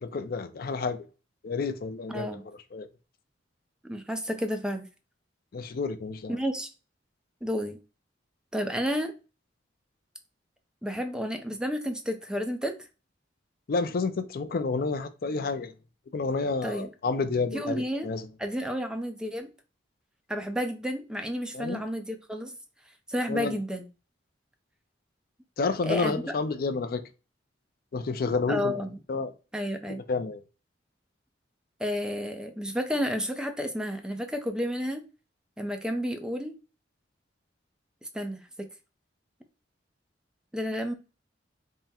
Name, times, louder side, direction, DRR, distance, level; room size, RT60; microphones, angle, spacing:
voice 1, 0.0-1.0 1.4-2.3 2.7-2.9 5.5-6.4 13.7-15.7 16.1-18.3 21.5-21.8 23.3-23.6 25.6-27.0 27.9-28.8 29.1-29.3 30.1-30.4, left 4 dB, 55° left, 0.4 m, -30 dB
voice 2, 2.1-2.4 3.8-4.9 6.3-6.7 7.4-7.8 8.5-9.1 10.8-12.8 16.6-16.9 17.5-18.1 18.4-19.5 20.3-22.5 23.1-23.8 25.8-26.2 28.5-29.0 29.5-30.0 31.8-35.0 35.6-36.5 38.1-38.7 40.5-40.9, equal, 5° right, 0.5 m, -31 dB
3.6 x 2.1 x 4.1 m
head